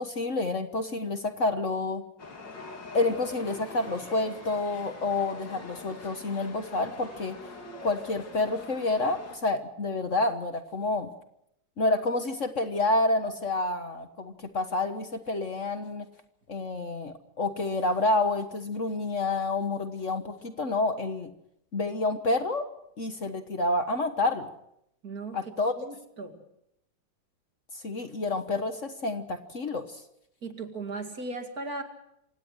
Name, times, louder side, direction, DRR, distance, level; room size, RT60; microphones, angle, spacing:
voice 1, 0.0-2.0 2.9-7.5 7.8-11.1 11.8-16.1 16.5-21.3 21.7-22.6 23.0-24.5 25.3-25.7 27.7-30.0, left 2 dB, 45° left, 8 dB, 1.5 m, -29 dB
Chatter / Subway metro underground, 2.2-9.4, left 3 dB, 70° left, 3.5 m, -44 dB
voice 2, 25.0-25.4 25.8-26.4 30.4-31.8, right 3 dB, 50° right, 5 dB, 2.7 m, -37 dB
27.0 x 17.0 x 6.4 m, 0.77 s
omnidirectional pair, 2.0 m